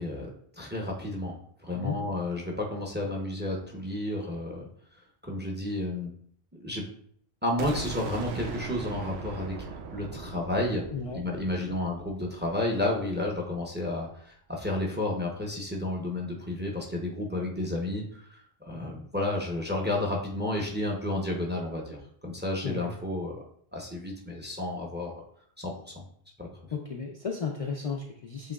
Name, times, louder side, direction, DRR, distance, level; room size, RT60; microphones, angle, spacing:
voice 1, 0.0-4.7 4.9-6.1 6.5-6.9 7.4-10.8 11.1-22.0 22.2-23.5 23.7-25.1 25.6-26.0 26.4-26.5, left 1 dB, 10° right, -1 dB, 0.6 m, -32 dB
sound 1, 7.6-13.4, right 5 dB, 90° right, 0.8 m, -40 dB
voice 2, 10.9-11.2 22.6-22.9 26.7-28.5, left 5 dB, 50° left, 1 dB, 0.4 m, -34 dB
7.6 x 3.0 x 2.3 m, 0.62 s
omnidirectional pair, 1.0 m